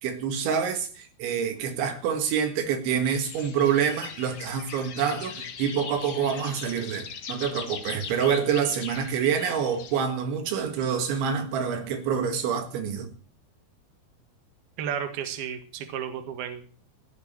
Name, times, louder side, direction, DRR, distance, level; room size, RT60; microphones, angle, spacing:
voice 1, 0.0-13.1, right 7 dB, 85° right, 4.2 m, -27 dB
sound 1, 3.0-10.0, left 6 dB, 90° left, 1.1 m, -40 dB
voice 2, 14.8-16.7, right 8 dB, 65° right, 3.4 m, -33 dB
16.0 x 7.4 x 8.7 m
omnidirectional pair, 5.2 m